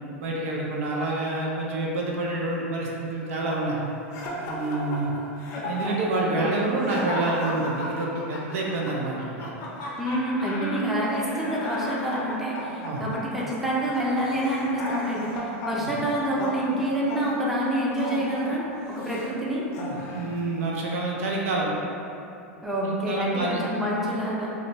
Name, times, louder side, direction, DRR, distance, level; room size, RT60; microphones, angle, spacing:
voice 1, 0.2-3.8 4.4-5.1 5.6-9.5 12.8-13.0 15.8-15.9 20.1-21.7 22.8-23.6, right 2 dB, 70° right, -3 dB, 0.4 m, -28 dB
sound 1, 4.1-19.3 19.7-20.4, left 1 dB, 45° left, 0.5 m, -35 dB
voice 2, 10.0-19.7 22.6-24.5, right 1 dB, 5° right, -6 dB, 0.5 m, -27 dB
2.4 x 2.1 x 2.8 m, 2.8 s
hypercardioid pair, 105°, 8 cm